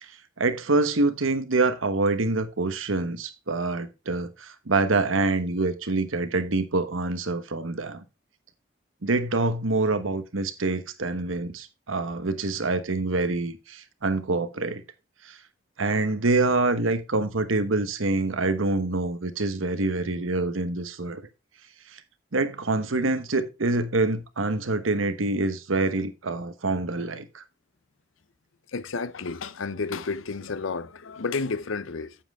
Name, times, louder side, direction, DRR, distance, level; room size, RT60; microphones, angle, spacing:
voice 1, 0.0-8.0 9.0-14.8 15.2-15.4 15.8-21.2 21.9-22.0 22.3-27.4, right 3 dB, 90° right, 1.1 m, -26 dB
voice 2, 28.7-32.2, left 4 dB, 85° left, 0.7 m, -31 dB
8.8 x 7.7 x 3.5 m
head